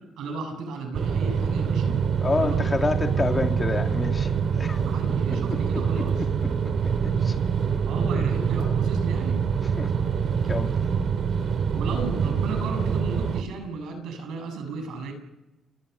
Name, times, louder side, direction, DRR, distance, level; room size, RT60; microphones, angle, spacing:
voice 1, 0.2-2.0 2.3-2.8 3.1-3.2 4.8-6.3 7.8-9.4 11.7-15.1, right 3 dB, 80° right, 6 dB, 7.7 m, -34 dB
sound 1, 0.9-13.4, right 6 dB, 55° right, 2.8 m, -25 dB
voice 2, 2.2-4.3 4.6-4.9 5.3-5.4 6.4-7.4 9.6-9.9 10.5-10.8, left 3 dB, 25° left, 4 dB, 2.5 m, -28 dB
30.0 x 21.5 x 7.0 m, 0.98 s
cardioid pair, 90°, 0 cm